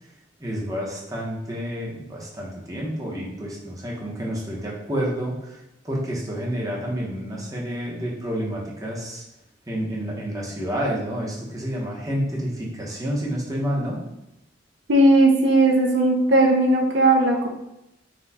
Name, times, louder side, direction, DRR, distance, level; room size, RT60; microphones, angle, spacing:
voice 1, 0.4-9.2 9.7-14.0, equal, 20° right, -3 dB, 0.9 m, -29 dB
voice 2, 14.9-17.5, right 1 dB, 70° right, 1 dB, 0.6 m, -17 dB
4.2 x 2.3 x 4.1 m, 0.89 s
head